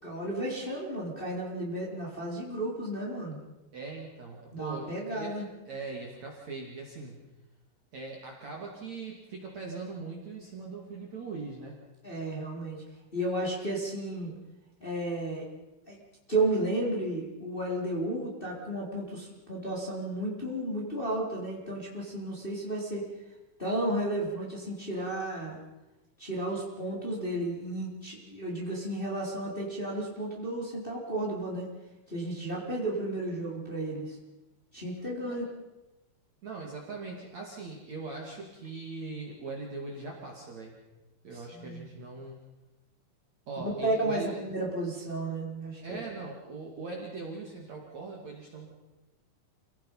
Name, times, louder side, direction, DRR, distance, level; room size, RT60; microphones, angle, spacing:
voice 1, 0.0-3.4 4.5-5.5 12.0-12.8 13.1-14.3 14.8-15.5 15.9-16.0 16.3-23.0 23.6-25.6 26.2-31.7 32.1-34.2 34.7-35.4 41.3-41.8 43.6-46.0, right 1 dB, 10° left, -3 dB, 3.8 m, -33 dB
voice 2, 3.7-5.3 5.6-7.2 7.9-11.8 35.2-35.4 36.4-40.8 41.2-42.4 43.5-44.3 45.8-48.7, right 3 dB, 45° right, -1 dB, 3.2 m, -40 dB
28.5 x 18.0 x 5.6 m, 1.0 s
omnidirectional pair, 5.5 m